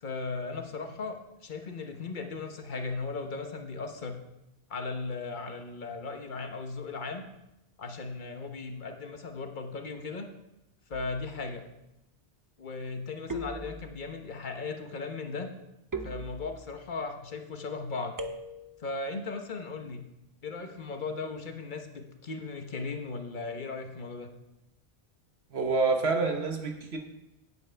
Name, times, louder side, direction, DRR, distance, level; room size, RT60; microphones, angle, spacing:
voice 1, 0.0-4.1 4.7-7.2 7.8-10.3 10.9-11.6 12.6-15.5 16.0-18.1 18.8-20.0 20.4-24.3, left 4 dB, 50° left, 5 dB, 1.2 m, -37 dB
sound 1, 13.3-14.2 15.9-16.9 18.2-18.9, right 1 dB, 25° right, 0.6 m, -39 dB
voice 2, 25.5-27.0, right 3 dB, 75° right, 4 dB, 1.4 m, -27 dB
9.2 x 8.3 x 4.5 m, 0.91 s
omnidirectional pair, 1.1 m